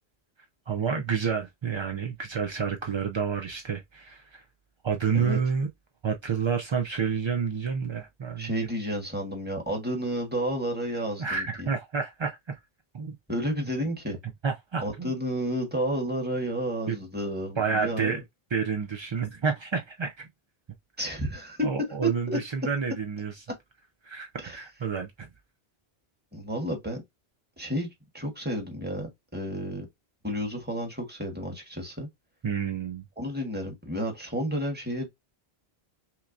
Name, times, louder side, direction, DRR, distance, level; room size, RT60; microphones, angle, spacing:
voice 1, 0.7-4.4 4.8-5.7 6.0-8.7 11.2-12.6 12.9-13.1 14.4-15.1 16.9-17.0 17.6-18.2 18.5-20.3 21.6-23.4 24.0-25.3 32.4-33.0, right 6 dB, 50° right, 0.3 m, -29 dB
voice 2, 8.4-11.7 13.3-14.2 14.8-18.2 21.0-21.7 22.0-22.4 24.4-24.6 26.3-27.0 27.6-27.9 28.1-29.9 30.2-32.1 33.2-35.1, equal, 10° right, 1.2 m, -31 dB
5.8 x 2.1 x 2.5 m
omnidirectional pair, 1.1 m